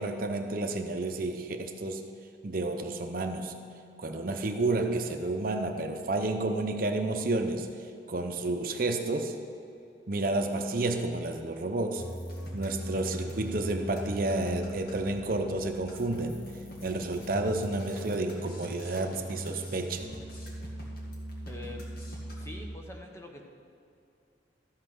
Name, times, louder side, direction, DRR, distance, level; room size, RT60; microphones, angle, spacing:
voice 1, 0.0-2.1 2.4-3.5 4.0-7.7 8.1-9.4 10.1-12.0 12.5-16.4 16.8-20.1, right 2 dB, 50° right, 4 dB, 0.7 m, -30 dB
sound 1, 12.0-22.6, equal, 55° left, 2.0 m, -40 dB
voice 2, 21.5-21.8 22.3-23.4, left 2 dB, 15° left, 1 dB, 1.0 m, -44 dB
13.5 x 5.8 x 6.2 m, 2.7 s
head